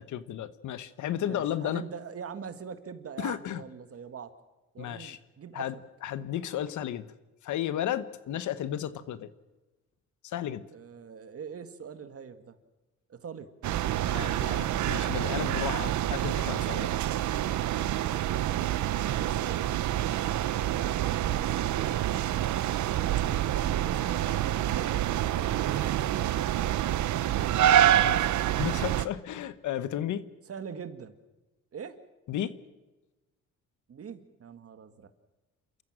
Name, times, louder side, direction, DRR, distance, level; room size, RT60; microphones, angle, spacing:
voice 1, 0.0-1.8 3.2-3.6 4.8-5.2 5.5-5.7 6.0-7.1 7.4-9.3 10.2-10.6 14.1-16.9 28.0-28.3 28.6-30.3 32.3-32.5, left 11 dB, 75° left, 15 dB, 1.1 m, -33 dB
voice 2, 1.2-4.3 4.7-5.8 8.3-8.4 10.7-12.6 13.1-13.5 17.9-18.6 19.1-19.7 20.7-22.0 23.4-25.8 30.5-31.1 31.7-32.0 33.9-35.1, right 6 dB, 50° right, 10 dB, 1.9 m, -43 dB
sound 1, 13.6-29.1, right 12 dB, 70° right, 0.9 m, -27 dB
28.0 x 14.0 x 7.5 m, 1.1 s
cardioid pair, 90°, 30 cm